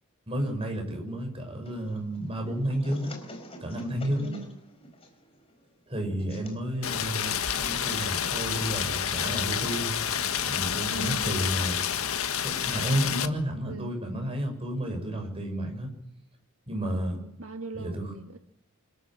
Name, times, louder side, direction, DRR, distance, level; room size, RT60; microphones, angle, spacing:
voice 1, 0.3-3.1 3.6-4.3 5.9-9.9 10.5-11.8 12.4-15.9 16.7-17.2 17.7-18.1, right 1 dB, 25° right, 3 dB, 6.8 m, -31 dB
sound 1, 1.6-8.3, equal, 25° left, 4.2 m, -49 dB
voice 2, 4.2-4.6 10.9-11.4 13.7-13.9 16.8-18.4, right 3 dB, 75° right, 5 dB, 1.7 m, -40 dB
Rain, 6.8-13.3, left 8 dB, 75° left, 1.6 m, -29 dB
25.5 x 13.5 x 7.6 m, 0.72 s
head